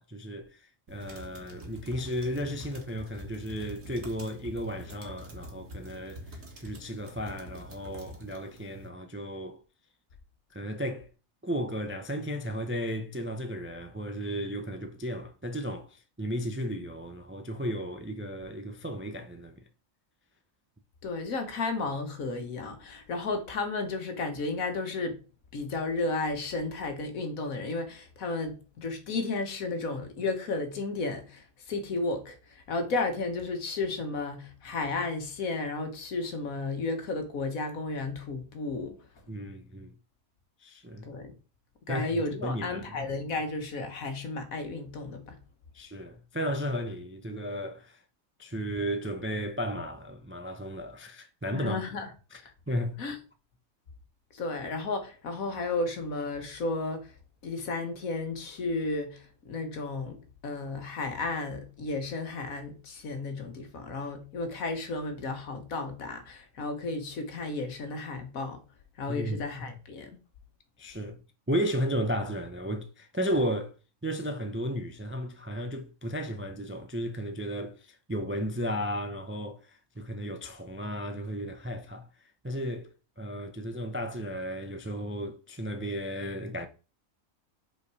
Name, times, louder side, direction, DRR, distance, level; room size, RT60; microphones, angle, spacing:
voice 1, 0.0-9.6 10.5-11.1 11.4-19.6 39.3-39.9 40.6-41.2 41.9-42.9 45.7-48.0 48.4-51.8 52.3-53.0 69.1-69.4 70.8-71.2 71.5-73.7 74.0-82.9 83.2-86.7, equal, 20° right, 0.3 m, -34 dB
sound 1, 0.9-8.9, equal, 70° right, 2.0 m, -46 dB
voice 2, 21.0-25.2 25.5-39.0 41.1-41.3 41.9-45.4 51.5-52.1 53.0-53.2 54.3-57.1 57.4-68.6 69.0-70.2, left 3 dB, 85° left, 1.6 m, -33 dB
5.6 x 4.6 x 4.7 m
omnidirectional pair, 1.4 m